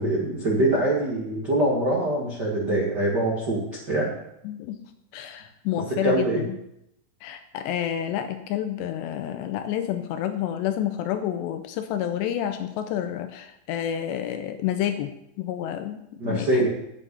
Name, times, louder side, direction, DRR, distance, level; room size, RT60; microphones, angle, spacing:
voice 1, 0.0-4.1 6.0-6.4 16.2-16.7, right 1 dB, 75° right, -3 dB, 0.9 m, -24 dB
voice 2, 4.4-4.8 5.1-6.4 7.2-16.7, left 10 dB, 80° left, 8 dB, 2.6 m, -29 dB
8.4 x 7.8 x 8.5 m, 0.81 s
omnidirectional pair, 5.4 m